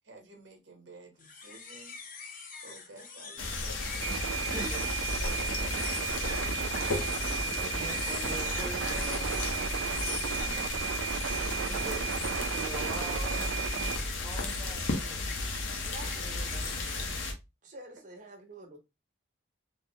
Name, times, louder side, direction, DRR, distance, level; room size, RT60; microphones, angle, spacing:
voice 1, 0.0-2.0 2.6-4.9 5.2-6.9, right 2 dB, 70° right, 0.9 m, -51 dB
sound 1, 1.2-17.1, left 5 dB, 45° left, 0.5 m, -44 dB
sound 2, 3.4-17.3, left 2 dB, 90° left, 0.7 m, -34 dB
sound 3, 4.0-14.0, right 8 dB, 90° right, 0.3 m, -34 dB
voice 2, 4.1-4.9 7.1-9.6 10.4-11.0 11.7-15.3 16.2-16.6, right 2 dB, ahead, 0.7 m, -44 dB
voice 3, 15.8-17.3 17.6-18.8, right 2 dB, 40° right, 0.8 m, -49 dB
3.4 x 2.0 x 2.6 m
head